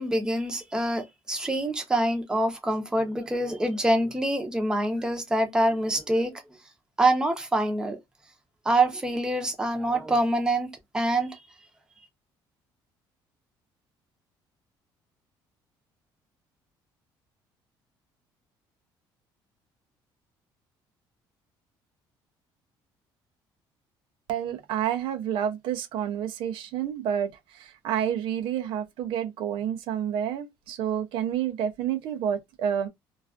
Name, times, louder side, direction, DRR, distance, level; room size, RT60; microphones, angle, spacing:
voice 1, 0.0-6.3 7.0-8.0 8.6-10.7 10.9-11.4, right 1 dB, 10° right, 0.6 m, -25 dB
voice 2, 24.3-32.9, right 9 dB, 75° right, 0.4 m, -29 dB
2.3 x 2.3 x 2.3 m
cardioid pair, 135°, 9 cm